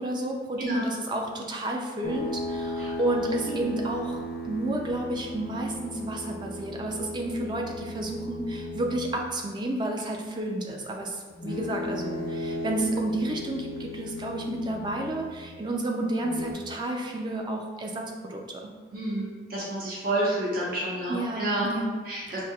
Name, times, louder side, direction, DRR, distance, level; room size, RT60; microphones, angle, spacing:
voice 1, 0.0-18.6 21.1-22.0 22.3-22.4, right 1 dB, 25° right, 1 dB, 0.3 m, -31 dB
sound 1, 2.0-9.4 11.3-15.5 16.2-16.5, left 1 dB, 50° left, 0.5 m, -36 dB
voice 2, 18.9-21.7 22.1-22.4, right 1 dB, 50° right, -7 dB, 0.9 m, -30 dB
4.9 x 2.7 x 2.3 m, 1.4 s
head